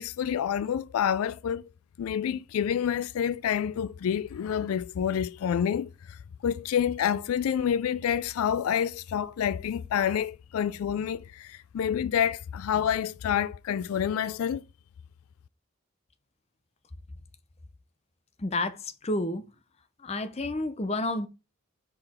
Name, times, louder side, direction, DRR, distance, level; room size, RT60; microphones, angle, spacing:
voice 1, 0.0-1.7 2.0-14.6, left 8 dB, 80° left, 0.3 m, -28 dB
voice 2, 18.4-19.4 20.0-21.3, left 2 dB, 30° left, 0.6 m, -30 dB
6.1 x 4.9 x 4.3 m
head